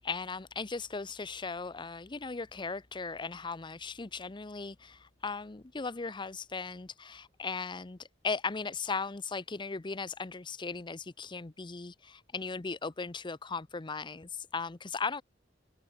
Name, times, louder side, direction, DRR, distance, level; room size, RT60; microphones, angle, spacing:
voice 1, 0.0-15.2, left 4 dB, 25° left, 0.7 m, -37 dB
open air
head